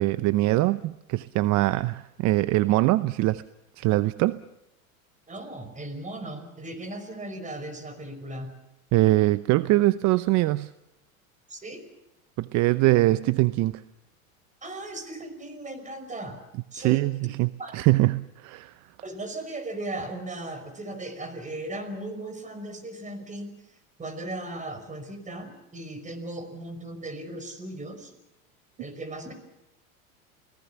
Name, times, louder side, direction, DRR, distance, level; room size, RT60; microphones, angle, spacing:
voice 1, 0.0-3.4 3.8-4.4 8.9-10.7 12.4-13.7 16.8-18.7, right 18 dB, 40° right, 15 dB, 0.8 m, -23 dB
voice 2, 5.3-8.5 11.5-11.8 14.6-16.4 16.7-17.0 17.6-17.8 19.0-23.5 24.0-28.1 28.8-29.3, right 2 dB, 15° right, 9 dB, 5.6 m, -37 dB
29.5 x 19.0 x 7.1 m, 0.89 s
hypercardioid pair, 100°, 43 cm